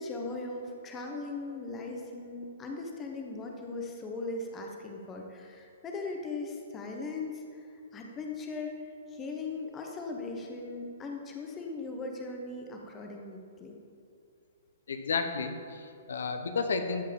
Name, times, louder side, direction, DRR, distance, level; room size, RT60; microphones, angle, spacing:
voice 1, 0.0-7.7 7.9-8.8 9.1-13.8, left 3 dB, 15° left, 1 dB, 0.9 m, -39 dB
voice 2, 14.9-17.1, left 4 dB, 80° left, 7 dB, 1.1 m, -32 dB
13.5 x 4.6 x 7.6 m, 2.5 s
hypercardioid pair, 175°, 0 cm